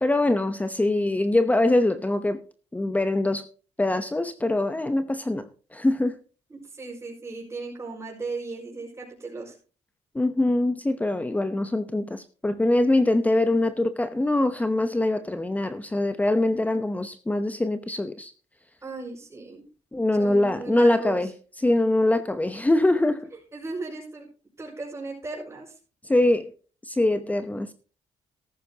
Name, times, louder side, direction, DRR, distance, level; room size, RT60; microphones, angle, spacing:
voice 1, 0.0-2.4 2.7-3.4 3.8-5.4 5.7-6.1 10.1-18.3 19.9-21.3 21.6-23.3 26.1-26.5 26.9-27.7, left 2 dB, 10° left, 0.9 m, -23 dB
voice 2, 6.5-9.5 18.8-19.6 20.2-21.3 22.1-22.2 23.5-24.3 24.6-25.8, right 3 dB, 25° right, 5.3 m, -36 dB
14.0 x 13.0 x 2.9 m
cardioid pair, 90°, 12 cm